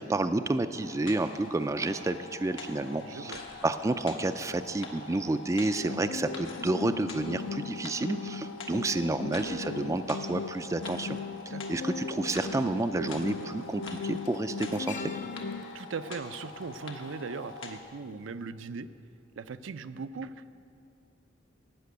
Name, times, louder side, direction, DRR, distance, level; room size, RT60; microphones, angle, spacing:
voice 1, 0.0-3.4 3.6-11.2 11.7-14.9, right 2 dB, 15° right, 10 dB, 0.3 m, -30 dB
sound 1, 0.7-17.8, left 3 dB, 85° left, 1.4 m, -45 dB
voice 2, 2.7-3.4 11.5-11.8 15.7-18.9 19.4-20.5, right 4 dB, 75° right, 11 dB, 0.5 m, -39 dB
sound 2, 5.8-15.8, left 5 dB, 70° left, 0.6 m, -38 dB
sound 3, 11.7-11.8 13.1-13.3 13.6-17.9 18.2-18.3, left 5 dB, 40° left, 0.7 m, -48 dB
15.0 x 6.1 x 9.3 m, 2.5 s
head